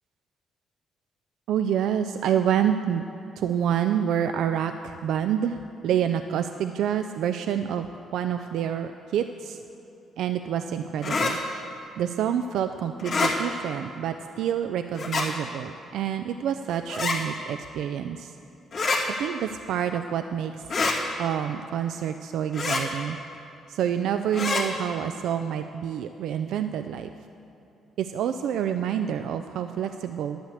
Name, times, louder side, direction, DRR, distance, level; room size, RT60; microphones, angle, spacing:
voice 1, 1.5-3.0 3.4-9.6 10.2-11.4 12.0-18.3 19.2-20.6 21.2-23.2 23.7-27.1 28.0-30.4, right 9 dB, 80° right, 8 dB, 0.4 m, -27 dB
sound 1, 11.0-11.3 13.0-13.3 14.9-15.3 16.9-17.2 18.7-19.0 20.7-21.0 22.5-22.8 24.3-24.6, left 4 dB, 60° left, 2.3 m, -25 dB
11.5 x 6.4 x 8.2 m, 2.9 s
cardioid pair, 90°, 0 cm